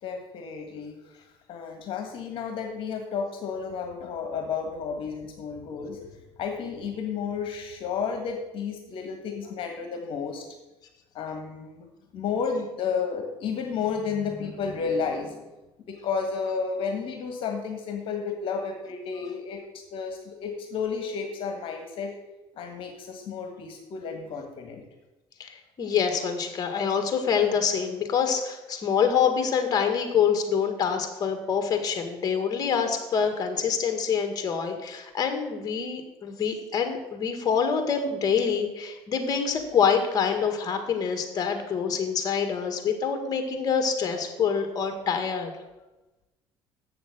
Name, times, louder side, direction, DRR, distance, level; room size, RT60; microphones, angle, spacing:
voice 1, 0.0-1.0 1.5-6.0 6.4-10.5 11.1-11.8 12.1-15.4 15.9-19.6 19.9-22.1 22.6-24.8, left 5 dB, 60° left, 4 dB, 1.6 m, -32 dB
voice 2, 25.4-45.5, left 6 dB, 40° left, 6 dB, 1.8 m, -26 dB
7.7 x 6.9 x 8.1 m, 1.0 s
cardioid pair, 110°, 10 cm